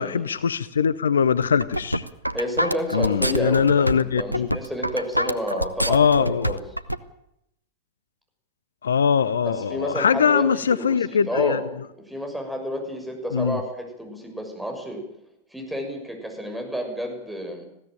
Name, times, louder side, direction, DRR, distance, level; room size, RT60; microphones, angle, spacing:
voice 1, 0.0-2.0 2.9-4.5 5.9-6.6 8.8-11.6 13.3-13.6, left 7 dB, 70° left, 17 dB, 0.7 m, -21 dB
sound 1, 1.4-7.0, equal, 90° right, 0.9 m, -26 dB
voice 2, 2.3-6.6 9.4-11.6 12.1-15.0 15.5-17.6, equal, 5° right, 3 dB, 6.4 m, -31 dB
20.0 x 16.0 x 9.1 m, 0.81 s
figure-of-eight pair, 90°, 0 cm